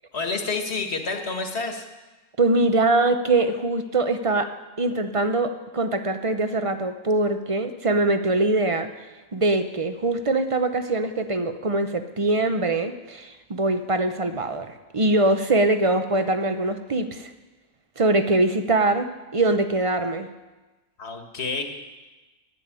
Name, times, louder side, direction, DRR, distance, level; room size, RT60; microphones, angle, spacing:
voice 1, 0.1-1.9 21.0-21.6, left 4 dB, 50° left, 5 dB, 1.7 m, -29 dB
voice 2, 2.4-4.5 4.8-8.9 9.3-17.3 18.0-20.3, right 2 dB, 35° right, 8 dB, 0.6 m, -23 dB
11.0 x 10.5 x 8.3 m, 1.2 s
omnidirectional pair, 1.4 m